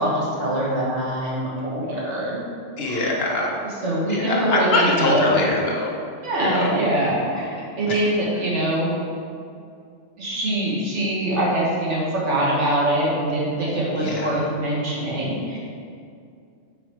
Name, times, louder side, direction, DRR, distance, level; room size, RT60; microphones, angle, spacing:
voice 1, 0.0-2.5 2.8-3.2 3.6-5.5 6.2-8.9 10.2-15.6, right 1 dB, 85° right, -6 dB, 1.7 m, -23 dB
voice 2, 2.8-3.6 4.1-5.9 6.4-6.8 7.9-8.0 14.0-14.4, left 2 dB, 60° left, -1 dB, 1.1 m, -23 dB
5.0 x 4.6 x 4.5 m, 2.4 s
omnidirectional pair, 1.2 m